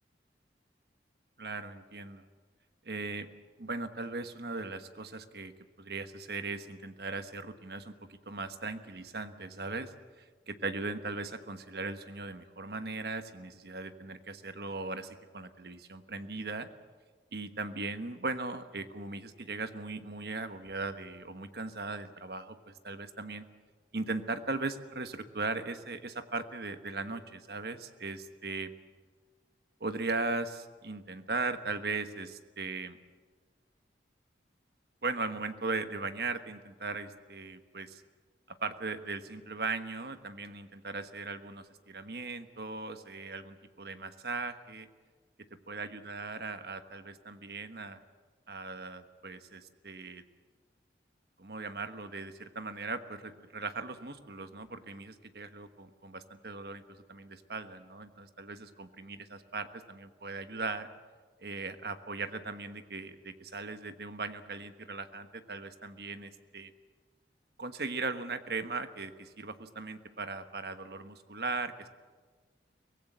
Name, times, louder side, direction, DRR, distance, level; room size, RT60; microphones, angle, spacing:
voice 1, 1.4-2.2 2.8-3.3 3.6-5.5 5.8-16.7 17.3-23.4 23.9-28.7 29.8-33.0 35.0-38.0 38.5-44.9 45.7-48.0 48.5-50.2 51.4-56.8 57.1-60.9 61.4-66.7 67.6-71.9, right 3 dB, 60° right, 9 dB, 1.3 m, -38 dB
23.5 x 18.5 x 8.0 m, 1.4 s
head